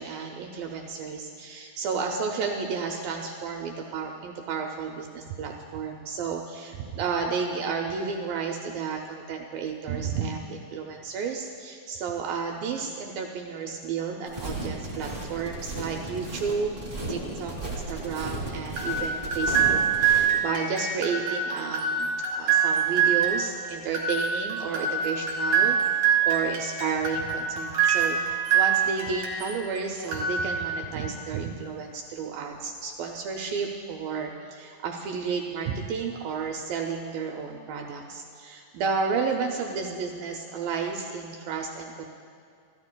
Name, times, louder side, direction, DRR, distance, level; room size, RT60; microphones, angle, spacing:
voice 1, 0.0-16.8 17.0-42.1, right 5 dB, 80° right, 2 dB, 2.4 m, -32 dB
sound 1, 14.3-20.3, right 2 dB, 10° right, 1.9 m, -35 dB
sound 2, 18.8-29.6 30.0-30.9, right 6 dB, 55° right, 2.9 m, -25 dB
26.5 x 14.0 x 2.2 m, 2.4 s
omnidirectional pair, 4.3 m